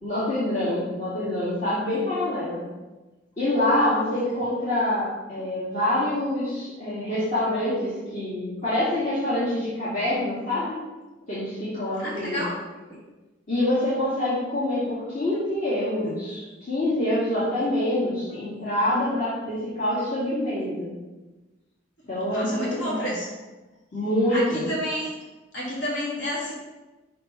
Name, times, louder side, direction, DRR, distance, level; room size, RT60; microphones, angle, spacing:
voice 1, 0.0-2.7 3.4-10.8 11.3-12.5 13.5-20.9 22.1-23.1 23.9-24.7, left 1 dB, 45° left, -11 dB, 2.5 m, -26 dB
voice 2, 12.0-12.6 22.3-23.3 24.3-25.1 25.5-26.5, equal, 70° left, -5 dB, 2.5 m, -30 dB
6.0 x 5.2 x 5.8 m, 1.1 s
head